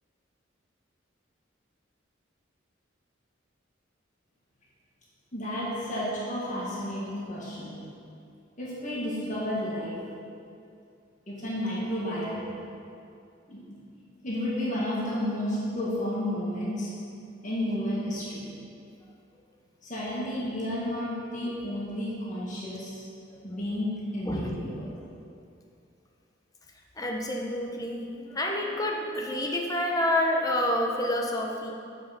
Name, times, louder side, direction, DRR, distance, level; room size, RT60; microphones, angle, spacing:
voice 1, 5.3-7.8 8.6-9.9 11.3-12.4 13.5-13.8 14.2-16.9 17.4-18.4 19.8-23.1 23.4-24.9, left 1 dB, 40° left, -7 dB, 1.8 m, -31 dB
voice 2, 27.0-31.7, left 1 dB, 20° left, 0 dB, 0.9 m, -28 dB
7.7 x 6.4 x 6.0 m, 2.5 s
head